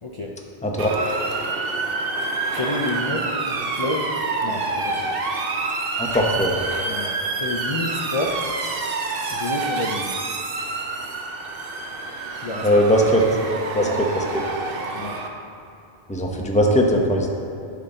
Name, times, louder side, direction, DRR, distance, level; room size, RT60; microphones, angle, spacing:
voice 1, 0.0-0.3 2.6-4.1 4.4-5.1 6.8-8.4 9.3-10.1 12.4-12.8 13.7-14.0 14.9-15.2, left 2 dB, 35° left, -1 dB, 0.5 m, -29 dB
voice 2, 0.6-0.9 6.0-6.6 12.6-13.2 13.7-14.2 16.1-17.3, equal, 5° left, -1 dB, 0.8 m, -19 dB
Motor vehicle (road) / Siren, 0.8-15.3, right 3 dB, 60° right, 0.9 m, -27 dB
11.5 x 5.8 x 3.9 m, 2.5 s
omnidirectional pair, 1.1 m